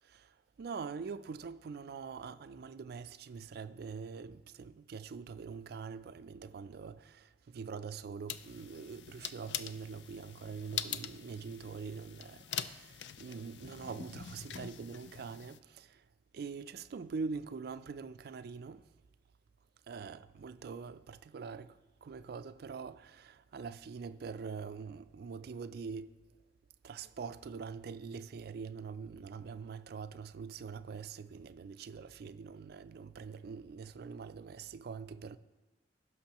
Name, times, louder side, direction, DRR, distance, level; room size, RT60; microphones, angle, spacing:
voice 1, 0.0-16.1 16.3-18.9 19.9-26.2 26.8-35.4, right 5 dB, 60° right, 0.3 m, -44 dB
sound 1, 8.3-15.6, left 9 dB, 75° left, 0.4 m, -44 dB
16.0 x 6.0 x 3.0 m
head